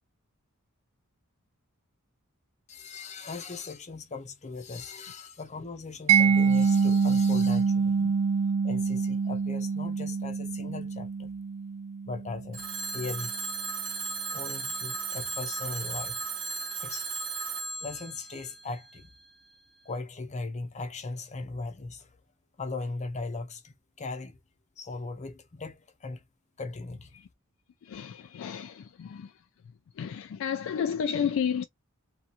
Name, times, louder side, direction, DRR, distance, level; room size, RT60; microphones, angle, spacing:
voice 1, 2.7-8.0 8.6-11.3 12.0-12.6 12.9-13.3 14.3-16.2 16.8-17.1 17.3-17.4 17.8-19.1 19.8-22.1 22.6-24.4 24.8-26.2 26.6-27.1, left 3 dB, 35° left, 0.7 m, -38 dB
Mallet percussion, 6.1-12.9, right 5 dB, 75° right, 0.4 m, -25 dB
Telephone, 12.5-19.4, right 5 dB, 40° right, 1.1 m, -36 dB
voice 2, 27.8-29.5 29.9-31.6, left 7 dB, 60° left, 0.3 m, -32 dB
2.8 x 2.3 x 2.5 m
head